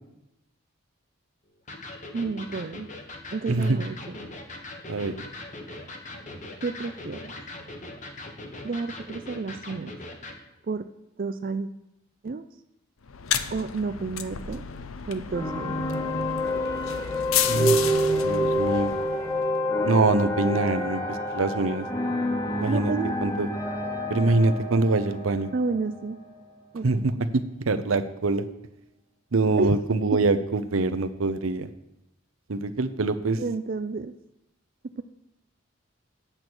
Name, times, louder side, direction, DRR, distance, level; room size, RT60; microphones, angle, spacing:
Electric guitar, 1.7-10.4, left 2 dB, 35° left, 1.2 m, -40 dB
voice 1, 2.1-2.9 3.3-4.2 6.6-7.3 8.6-9.9 10.7-10.9 11.2-11.7 12.2-12.5 13.5-14.6 15.0-15.8 22.7-23.2 25.5-26.2 26.7-27.2 29.6-29.8 30.1-30.2 33.4-34.1 35.0-35.1, right 4 dB, 45° right, 8 dB, 0.4 m, -30 dB
voice 2, 3.5-3.8 4.9-5.1 17.5-17.8 18.2-18.9 19.8-21.9 22.6-22.9 23.2-23.5 24.1-25.5 26.8-28.5 29.3-31.7 32.5-33.4, right 3 dB, 85° right, 10 dB, 0.7 m, -24 dB
sound 1, 13.1-19.5, left 9 dB, 90° left, 0.6 m, -32 dB
sound 2, 15.3-26.6, equal, 15° left, 0.9 m, -28 dB
8.9 x 8.1 x 6.2 m, 0.90 s
head